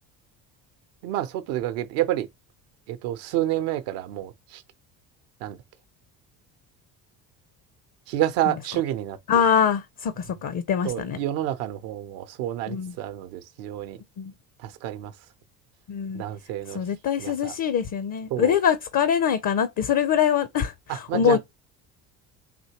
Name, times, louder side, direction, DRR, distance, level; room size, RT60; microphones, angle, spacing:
voice 1, 1.0-2.3 2.9-4.6 5.4-5.6 8.1-9.2 10.3-10.4 10.8-14.0 14.6-15.1 16.1-16.8 17.2-17.6 18.3-18.5 20.9-21.4, right 13 dB, 75° right, 0.7 m, -29 dB
voice 2, 9.3-11.2 12.7-12.9 14.2-14.3 15.9-16.2 16.7-21.4, left 8 dB, 45° left, 0.6 m, -24 dB
4.3 x 2.8 x 2.8 m
hypercardioid pair, 65°, 44 cm